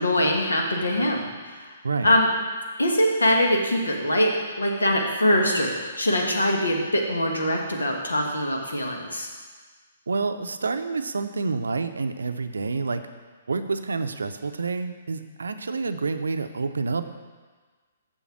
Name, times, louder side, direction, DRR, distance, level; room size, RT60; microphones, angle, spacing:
voice 1, 0.0-1.7 2.0-2.3 2.8-9.3, left 1 dB, 80° left, 1 dB, 1.6 m, -23 dB
voice 2, 10.1-13.0 13.5-17.0, right 4 dB, 70° right, 9 dB, 0.6 m, -28 dB
7.2 x 7.0 x 6.0 m, 1.4 s
figure-of-eight pair, 125°, 0 cm